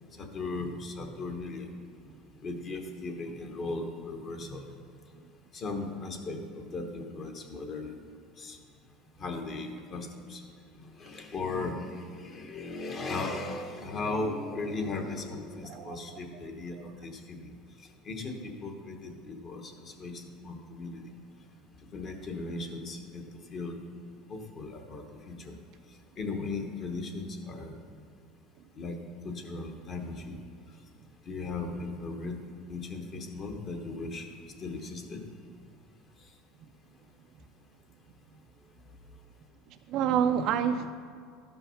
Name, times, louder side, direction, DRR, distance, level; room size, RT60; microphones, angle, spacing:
voice 1, 0.2-1.7 2.4-4.6 5.5-8.0 8.4-8.6 9.2-10.4 10.8-17.5 18.0-21.0 21.9-23.2 23.5-23.7 24.3-25.6 26.2-27.7 28.8-29.0 29.2-30.4 31.3-32.4 32.7-34.3 34.6-35.3, left 3 dB, 30° left, 4 dB, 1.0 m, -37 dB
voice 2, 15.7-16.2 39.9-40.9, right 8 dB, 50° right, 7 dB, 0.4 m, -28 dB
12.5 x 5.7 x 5.6 m, 2.3 s
cardioid pair, 150°, 0 cm